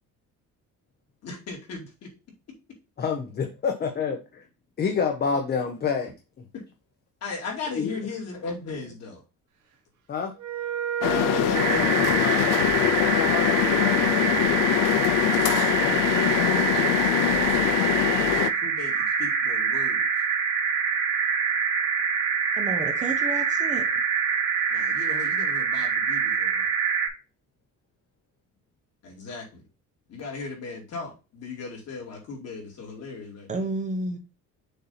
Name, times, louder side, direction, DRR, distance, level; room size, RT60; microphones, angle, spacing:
voice 1, 1.2-2.1 7.2-9.2 11.1-12.8 15.5-20.1 24.7-26.7 29.0-29.6 30.1-33.7, left 4 dB, 50° left, 2.4 m, -37 dB
voice 2, 3.0-4.4 4.8-6.1 7.7-7.9 10.1-10.3, left 6 dB, 30° left, 0.7 m, -27 dB
Wind instrument woodwind instrument, 10.4-17.1, right 9 dB, 65° right, 1.2 m, -35 dB
sound 1, 11.0-18.5, left 12 dB, 80° left, 0.6 m, -23 dB
sound 2, 11.5-27.1, right 6 dB, 80° right, 2.3 m, -25 dB
voice 3, 22.6-23.8 33.5-34.2, right 2 dB, 25° right, 0.8 m, -31 dB
6.7 x 2.8 x 5.6 m
cardioid pair, 175°, 32 cm